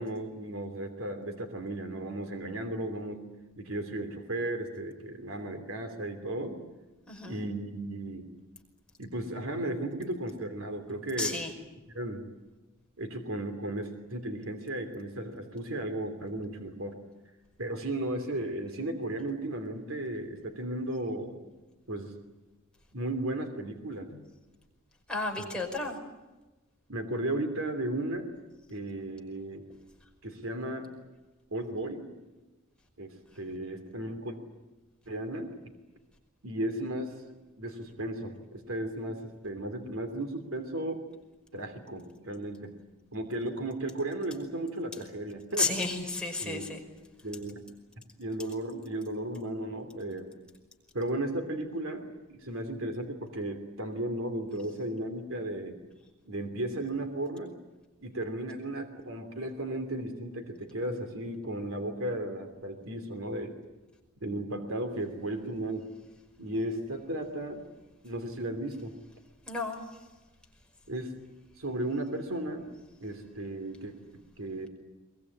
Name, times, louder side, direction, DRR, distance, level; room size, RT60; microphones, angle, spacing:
voice 1, 0.0-3.2 3.6-6.6 7.2-8.3 9.0-11.4 11.9-12.2 13.0-17.0 17.6-21.5 21.9-22.1 22.9-24.2 25.4-25.5 26.9-28.3 28.7-29.6 30.2-30.9 31.5-32.1 33.0-34.4 35.1-35.6 36.4-37.1 37.6-41.0 41.5-42.7 43.1-45.7 46.4-46.8 47.2-47.6 48.2-50.3 50.9-55.8 56.2-57.5 58.0-63.5 64.2-65.9 66.4-67.7 68.0-69.0 70.9-71.2 71.6-72.7 73.0-73.9 74.4-74.7, right 1 dB, 80° right, 7 dB, 3.0 m, -35 dB
voice 2, 7.1-7.4 11.2-11.5 25.1-26.0 45.6-46.8 69.5-70.0, left 3 dB, 5° left, 0 dB, 5.3 m, -32 dB
23.0 x 21.5 x 9.8 m, 1.1 s
head